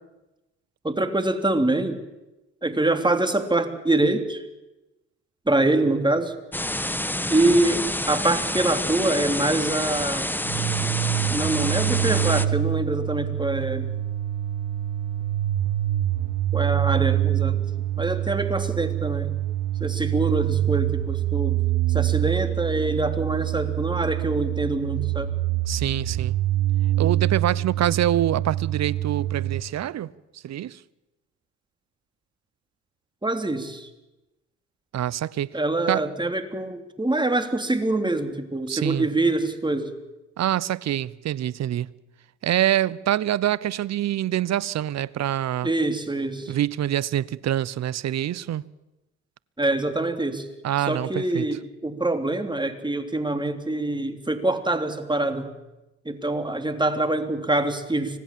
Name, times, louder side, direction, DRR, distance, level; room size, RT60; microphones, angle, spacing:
voice 1, 0.8-2.0 2.6-4.4 5.5-6.3 7.3-10.3 11.3-13.9 16.5-17.6 18.0-19.3 19.8-21.6 21.9-25.3 33.2-33.9 35.5-39.9 45.6-46.6 49.6-50.5 50.9-55.5 56.0-58.2, right 2 dB, 15° right, 3.3 m, -25 dB
sound 1, 6.5-12.5, left 1 dB, 5° left, 1.5 m, -28 dB
sound 2, 10.4-29.6, right 13 dB, 65° right, 1.4 m, -25 dB
voice 2, 25.7-26.3 27.0-30.1 30.4-30.8 34.9-35.5 35.9-36.1 38.7-39.1 40.4-41.9 42.4-45.7 46.5-48.6 50.6-51.4, right 12 dB, 50° right, 0.9 m, -25 dB
25.5 x 18.5 x 7.6 m
hypercardioid pair, 50°, 33 cm